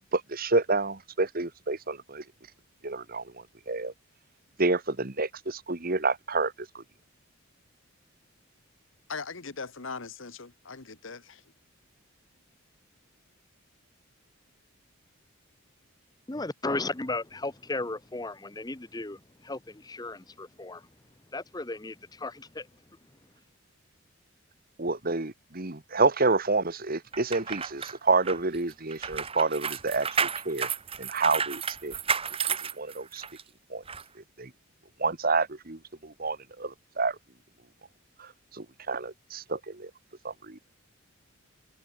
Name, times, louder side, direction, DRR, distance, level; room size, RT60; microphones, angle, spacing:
voice 1, 0.1-2.2 2.8-3.9 4.6-6.8 24.8-30.7 31.0-31.9 32.5-33.2 33.7-33.8 34.2-34.5 35.0-37.2 38.2-39.9 40.2-40.6, right 3 dB, 40° right, 1.7 m, -29 dB
voice 2, 9.1-11.4, left 4 dB, 60° left, 1.3 m, -40 dB
voice 3, 16.3-20.9 21.3-22.7, left 2 dB, 20° left, 0.8 m, -35 dB
sound 1, 27.1-33.4 33.9-34.0, right 6 dB, 25° right, 1.7 m, -32 dB
head